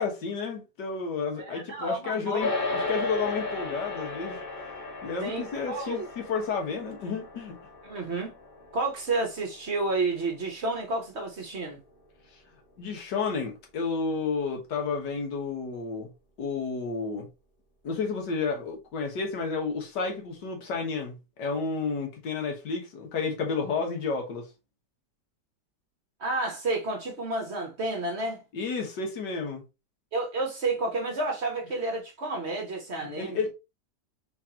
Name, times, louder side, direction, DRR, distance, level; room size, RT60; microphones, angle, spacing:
voice 1, 0.0-4.4 5.0-7.6 12.3-12.4 12.8-16.1 16.4-17.3 17.8-24.5 28.5-29.6 33.0-33.5, left 4 dB, 85° left, 1.9 m, -31 dB
voice 2, 1.4-2.6 5.2-6.1 7.8-8.3 8.7-11.8 26.2-28.4 30.1-33.4, right 2 dB, 45° right, 1.1 m, -30 dB
sound 1, 2.4-11.9, left 3 dB, 35° left, 1.3 m, -36 dB
4.0 x 3.7 x 2.8 m
omnidirectional pair, 1.8 m